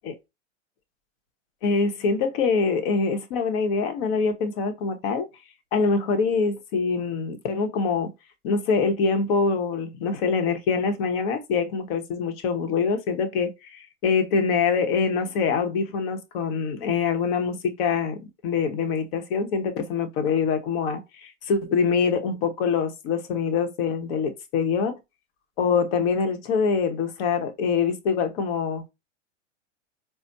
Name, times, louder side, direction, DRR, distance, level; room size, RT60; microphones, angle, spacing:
voice 1, 1.6-5.3 5.7-8.1 8.4-25.0 25.6-28.8, left 5 dB, 50° left, 1.0 m, -24 dB
4.1 x 2.1 x 2.6 m
hypercardioid pair, 105°, 37 cm